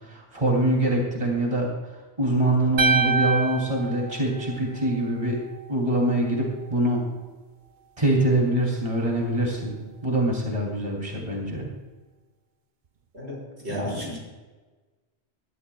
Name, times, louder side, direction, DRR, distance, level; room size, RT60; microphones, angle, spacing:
voice 1, 0.1-1.7 2.2-5.4 5.7-7.0 8.0-11.7 13.7-14.2, right 1 dB, 30° right, -1 dB, 3.0 m, -24 dB
sound 1, 2.8-5.0, right 3 dB, 50° right, 0.7 m, -25 dB
voice 2, 13.1-14.2, equal, 75° right, -5 dB, 5.5 m, -34 dB
20.0 x 13.0 x 2.3 m, 1.3 s
omnidirectional pair, 1.1 m